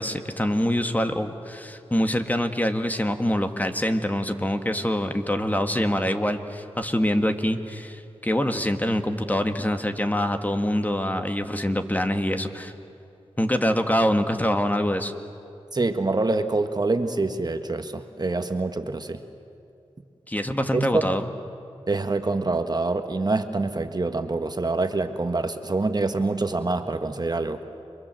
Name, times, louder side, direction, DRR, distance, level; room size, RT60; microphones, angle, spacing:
voice 1, 0.0-12.7 13.4-15.1 20.3-21.2, left 1 dB, 15° left, 6 dB, 1.9 m, -25 dB
voice 2, 15.7-19.2 20.7-21.0 21.9-27.6, right 3 dB, 40° right, 8 dB, 1.5 m, -25 dB
29.5 x 23.5 x 7.7 m, 2.6 s
cardioid pair, 50°, 11 cm